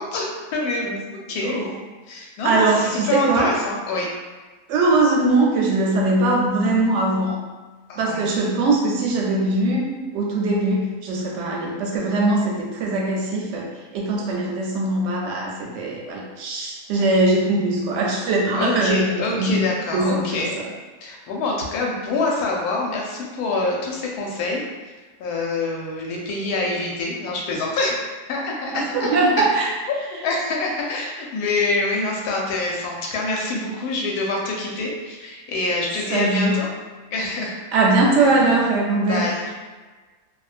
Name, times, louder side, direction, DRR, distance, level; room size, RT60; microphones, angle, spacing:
voice 1, 0.0-1.8 2.1-4.1 7.9-8.2 18.6-20.6 21.0-24.6 25.2-28.0 28.3-28.8 29.9-30.0 30.2-36.7 37.1-37.6 38.2-38.4 38.9-39.4, left 2 dB, 90° left, -1 dB, 1.1 m, -26 dB
voice 2, 2.4-3.6 4.7-7.4 8.0-19.7 19.9-20.5 28.7-29.7 36.1-36.6 37.7-39.3, right 2 dB, 65° right, -1 dB, 0.7 m, -21 dB
2.5 x 2.1 x 2.4 m, 1.3 s
omnidirectional pair, 1.6 m